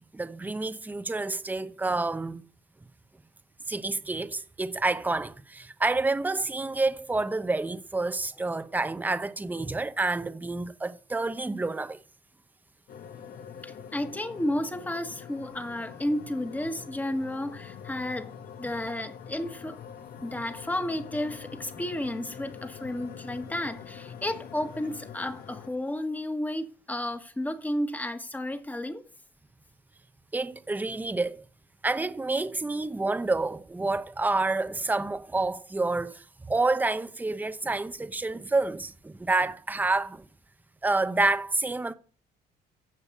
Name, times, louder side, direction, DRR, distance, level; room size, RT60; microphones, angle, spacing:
voice 1, 0.1-2.4 3.7-12.0 30.3-31.4 31.8-40.3 40.8-41.9, right 3 dB, 10° right, 0.8 m, -28 dB
sound 1, 12.9-25.7, left 8 dB, 60° left, 1.2 m, -44 dB
voice 2, 13.6-19.8 20.2-29.0, left 1 dB, 10° left, 1.6 m, -32 dB
15.0 x 5.4 x 8.5 m
cardioid pair, 110°, 17 cm